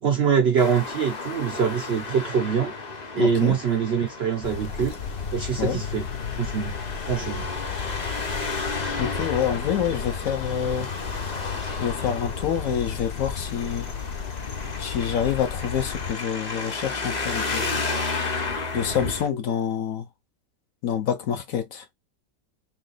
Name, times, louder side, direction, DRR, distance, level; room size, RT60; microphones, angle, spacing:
voice 1, 0.0-2.7 3.1-4.9 5.3-6.1 6.4-6.8 7.1-7.5, right 7 dB, 85° right, 0.5 m, -24 dB
Traffic noise roadway noise, 0.6-19.3, left 3 dB, 40° left, 0.6 m, -33 dB
voice 2, 3.2-3.5 5.6-5.8 9.0-10.9 11.8-13.9 14.8-17.8 18.7-20.1 20.8-21.8, left 8 dB, 65° left, 1.0 m, -27 dB
sound 1, 4.4-16.1, left 6 dB, 80° left, 0.5 m, -34 dB
3.2 x 2.8 x 3.8 m
omnidirectional pair, 1.8 m